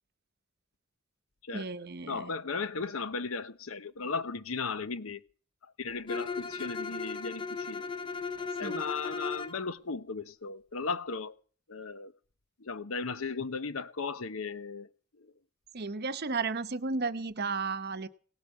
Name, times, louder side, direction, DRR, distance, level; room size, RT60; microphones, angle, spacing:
voice 1, 1.5-2.3 8.6-8.8 15.7-18.1, right 4 dB, 50° right, 0.9 m, -33 dB
voice 2, 2.1-5.2 5.8-7.9 8.6-11.4 11.7-12.1 12.6-14.9 15.2-15.3, left 4 dB, 80° left, 0.9 m, -36 dB
Bowed string instrument, 6.1-9.6, left 5 dB, 25° left, 0.7 m, -36 dB
17.5 x 8.2 x 8.1 m
head